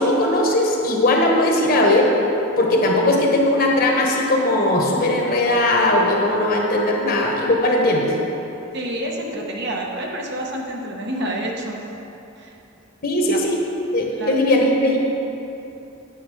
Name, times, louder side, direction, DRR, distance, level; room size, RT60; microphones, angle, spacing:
voice 1, 0.0-2.1 2.6-8.1 13.0-13.6 13.9-15.0, left 1 dB, 45° left, -1 dB, 1.3 m, -18 dB
voice 2, 8.7-11.8 12.4-12.5 13.3-13.4 14.2-14.3, right 1 dB, 55° right, -1 dB, 1.1 m, -28 dB
9.6 x 7.0 x 5.0 m, 2.9 s
head